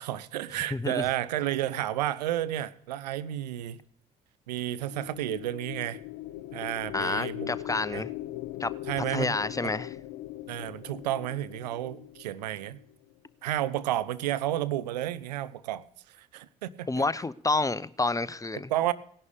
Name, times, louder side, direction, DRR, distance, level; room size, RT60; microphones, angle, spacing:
voice 1, 0.0-3.8 4.5-6.0 6.5-7.6 7.9-8.0 8.9-9.4 9.6-9.7 10.5-12.8 13.4-15.8 16.2-16.9 18.7-18.9, right 13 dB, 85° right, 0.6 m, -31 dB
voice 2, 0.7-1.0 6.9-8.1 8.6-8.7 9.1-10.0 16.9-18.7, left 3 dB, 15° left, 0.8 m, -29 dB
sound 1, 4.7-13.1, left 14 dB, 70° left, 0.7 m, -40 dB
18.0 x 11.0 x 5.1 m
hypercardioid pair, 50°, 21 cm